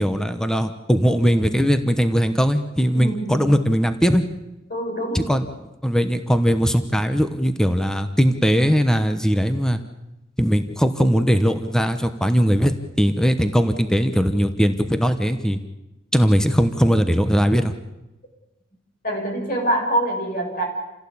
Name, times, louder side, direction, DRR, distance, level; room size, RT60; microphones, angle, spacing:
voice 1, 0.0-4.2 5.1-5.4 5.8-9.8 10.4-15.6 16.1-17.7, equal, 5° left, 9 dB, 1.0 m, -19 dB
voice 2, 2.9-3.6 4.7-5.3 19.0-20.6, right 1 dB, 45° left, 2 dB, 6.4 m, -25 dB
28.0 x 16.5 x 8.7 m, 1.0 s
head